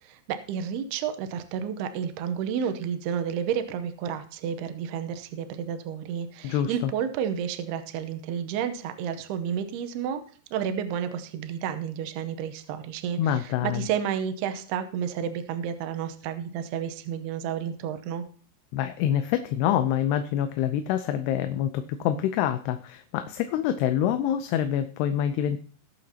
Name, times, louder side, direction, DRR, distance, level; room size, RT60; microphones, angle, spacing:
voice 1, 0.0-10.2 10.5-18.2, right 8 dB, 80° right, 8 dB, 2.7 m, -31 dB
voice 2, 6.4-6.9 13.2-13.9 18.7-25.6, left 10 dB, 80° left, 9 dB, 2.6 m, -26 dB
20.0 x 7.7 x 2.8 m, 0.43 s
omnidirectional pair, 4.9 m